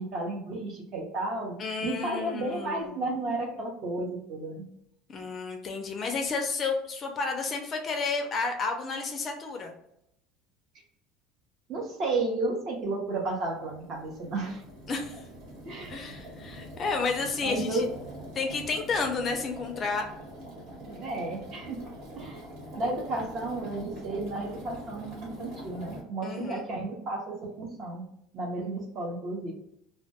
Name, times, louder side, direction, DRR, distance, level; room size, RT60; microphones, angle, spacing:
voice 1, 0.0-4.7 11.7-14.6 15.6-15.9 17.4-17.9 20.8-21.8 22.1-22.4 22.8-28.0 28.3-29.5, right 2 dB, 40° right, 0 dB, 0.7 m, -33 dB
voice 2, 1.6-3.0 5.1-9.7 14.9-15.2 15.9-17.8 18.3-20.0 26.2-26.7, left 4 dB, 30° left, 3 dB, 0.4 m, -31 dB
sound 1, 12.9-26.0, equal, 60° right, 1.2 m, -44 dB
2.2 x 2.1 x 2.8 m, 0.76 s
cardioid pair, 160°, 0 cm